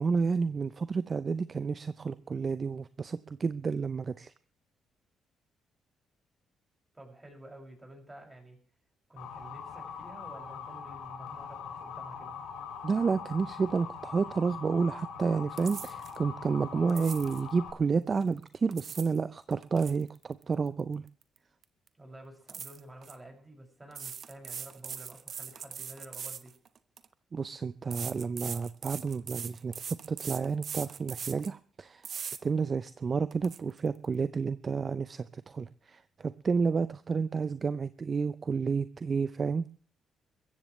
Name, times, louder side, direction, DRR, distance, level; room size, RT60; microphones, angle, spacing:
voice 1, 0.0-4.3 12.8-21.1 27.3-32.1 32.4-39.7, right 5 dB, 40° right, 14 dB, 0.6 m, -30 dB
voice 2, 6.9-8.6 9.1-12.3 22.0-26.5, right 1 dB, 15° right, 2 dB, 6.3 m, -50 dB
Motor vehicle (road) / Siren, 9.2-17.7, left 6 dB, 90° left, 2.8 m, -42 dB
sound 1, 15.6-16.2 16.9-17.4 18.5-19.2 19.5-21.4 21.6-21.9 22.5-23.1 23.9-27.1 27.9-31.5 32.0-32.4 32.9-33.0 33.3-33.6, right 7 dB, 55° right, 1.0 m, -41 dB
22.0 x 14.5 x 3.2 m, 0.42 s
cardioid pair, 90°, 0 cm